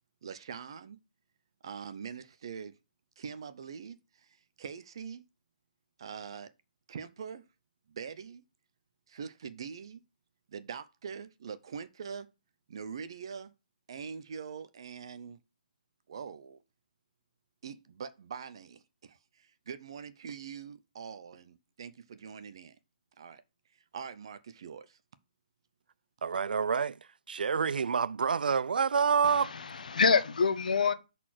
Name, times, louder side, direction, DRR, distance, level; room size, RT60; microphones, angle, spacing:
voice 1, 0.2-1.0 1.6-2.8 3.2-5.3 6.0-6.5 6.9-7.5 7.9-8.4 9.1-10.0 10.5-12.3 12.7-13.5 13.9-15.4 16.1-16.6 17.6-22.8 23.2-23.4 23.9-25.0, right 6 dB, 35° right, 0.5 m, -43 dB
voice 2, 26.2-27.0 27.3-29.5, right 6 dB, 90° right, 0.3 m, -27 dB
voice 3, 29.2-30.9, left 5 dB, 60° left, 0.9 m, -26 dB
6.5 x 4.1 x 5.8 m
hypercardioid pair, 180°, 5 cm